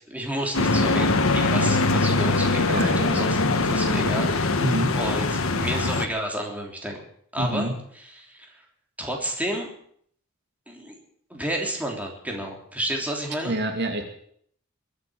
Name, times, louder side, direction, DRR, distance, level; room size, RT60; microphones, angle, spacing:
voice 1, 0.1-2.7 3.0-4.6 4.9-7.0 7.3-8.6 9.0-9.7 10.7-11.0 11.3-13.6, right 1 dB, 5° right, 1 dB, 3.3 m, -31 dB
sound 1, 0.5-6.1, left 3 dB, 85° left, 1.4 m, -22 dB
voice 2, 2.7-3.4 4.6-5.0 7.4-7.8 13.4-14.0, right 1 dB, 55° right, 4 dB, 2.3 m, -27 dB
21.5 x 8.7 x 7.7 m, 0.65 s
head